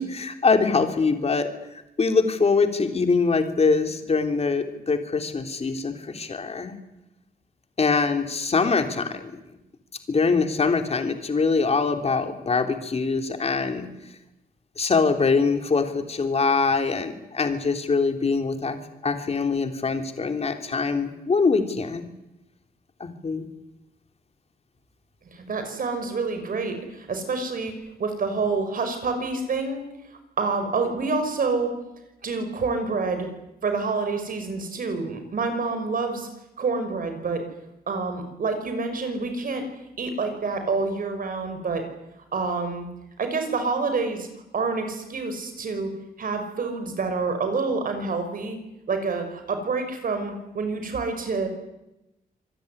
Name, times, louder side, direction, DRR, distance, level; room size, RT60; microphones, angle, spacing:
voice 1, 0.0-6.8 7.8-9.4 10.1-13.9 14.8-22.0 23.0-23.5, left 4 dB, 40° left, 6 dB, 3.3 m, -23 dB
voice 2, 25.3-29.8 30.1-31.7 32.2-33.3 33.6-36.3 36.6-37.4 37.9-39.7 40.0-41.9 42.3-42.9 43.2-44.3 44.5-45.9 46.2-48.6 48.9-51.5, right 4 dB, 60° right, 7 dB, 5.7 m, -27 dB
26.5 x 19.5 x 9.9 m, 0.93 s
wide cardioid pair, 130°, 16 cm